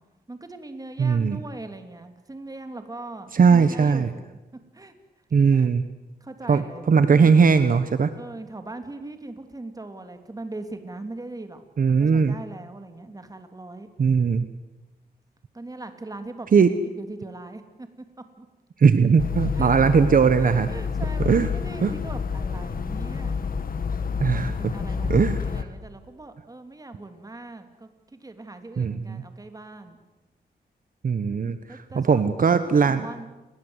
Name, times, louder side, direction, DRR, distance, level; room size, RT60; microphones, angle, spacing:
voice 1, 0.3-4.2 4.7-4.9 5.5-5.7 6.2-6.8 7.1-7.4 8.1-11.6 12.0-13.9 15.5-16.5 16.8-17.9 18.4-18.5 19.5-19.7 20.7-23.4 24.0-24.1 24.5-30.0 31.7-32.2 32.6-33.3, right 2 dB, 20° right, 7 dB, 3.0 m, -40 dB
voice 2, 1.0-1.4 3.3-4.1 5.3-5.8 6.5-8.1 11.8-12.3 14.0-14.5 16.5-16.7 18.8-20.7 21.2-21.5 21.8-21.9 24.2-24.7 25.0-25.4 28.8-29.2 31.0-33.1, right 5 dB, 55° right, 11 dB, 1.2 m, -19 dB
sound 1, 19.2-25.6, left 6 dB, 60° left, 1.8 m, -28 dB
29.5 x 21.5 x 8.1 m, 1.1 s
wide cardioid pair, 120°, 17 cm